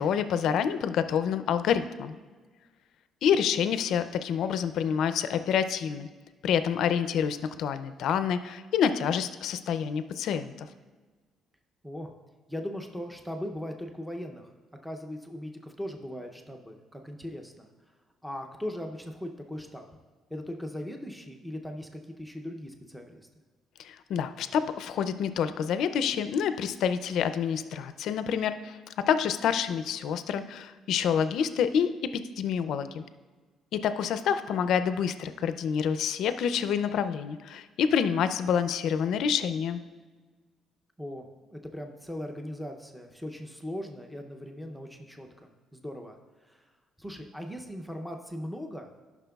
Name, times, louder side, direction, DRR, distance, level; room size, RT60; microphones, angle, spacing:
voice 1, 0.0-2.2 3.2-6.1 6.4-10.7 23.8-28.8 29.1-33.0 33.7-39.8, left 7 dB, 70° left, 11 dB, 0.4 m, -27 dB
voice 2, 12.5-14.5 14.8-17.7 18.2-19.9 20.3-23.3 41.0-46.7 47.0-48.9, left 1 dB, ahead, 3 dB, 0.6 m, -39 dB
14.0 x 5.9 x 2.3 m, 1.4 s
cardioid pair, 145°, 0 cm